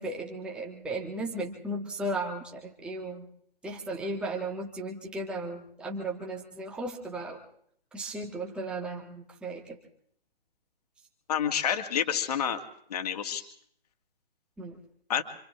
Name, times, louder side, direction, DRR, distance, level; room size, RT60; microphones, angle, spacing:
voice 1, 0.0-3.2 3.6-7.4 7.9-9.8 14.6-14.8, right 2 dB, 5° right, 0 dB, 1.5 m, -35 dB
voice 2, 11.3-12.6 12.9-13.4 15.1-15.2, left 8 dB, 40° left, 7 dB, 2.0 m, -28 dB
27.0 x 27.0 x 3.7 m, 0.64 s
figure-of-eight pair, 135°, 30 cm